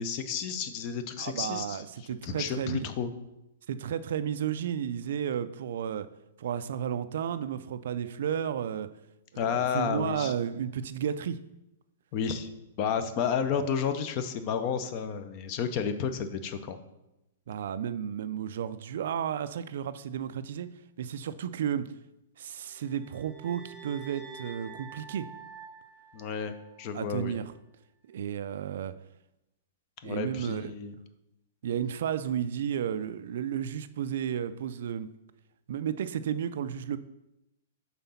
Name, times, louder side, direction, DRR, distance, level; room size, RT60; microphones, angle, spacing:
voice 1, 0.0-1.8 2.2-3.1 9.4-10.3 12.1-12.5 12.8-16.8 26.1-26.5 26.8-27.4 30.0-30.9, left 7 dB, 30° left, 10 dB, 0.5 m, -31 dB
voice 2, 1.2-2.9 3.7-6.1 6.4-8.9 9.3-11.4 13.2-13.4 17.5-21.9 22.4-25.3 26.9-27.4 28.1-28.9 30.0-30.7 31.6-35.1 35.7-37.0, right 9 dB, 60° right, 13 dB, 0.3 m, -33 dB
sound 1, 22.7-27.0, right 6 dB, ahead, 0.8 m, -48 dB
5.6 x 4.0 x 5.6 m, 0.92 s
hypercardioid pair, 165°, 0 cm